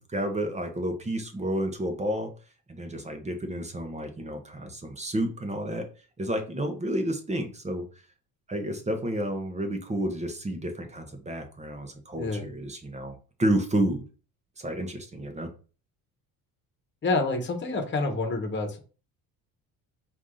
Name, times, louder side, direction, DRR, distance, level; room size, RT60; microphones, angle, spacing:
voice 1, 0.0-2.3 2.7-5.9 6.2-8.0 8.5-14.0 14.6-15.5, right 1 dB, 15° right, 5 dB, 0.9 m, -30 dB
voice 2, 17.0-18.8, left 3 dB, 30° left, 4 dB, 1.2 m, -28 dB
4.6 x 2.7 x 3.8 m, 0.36 s
cardioid pair, 120°, 39 cm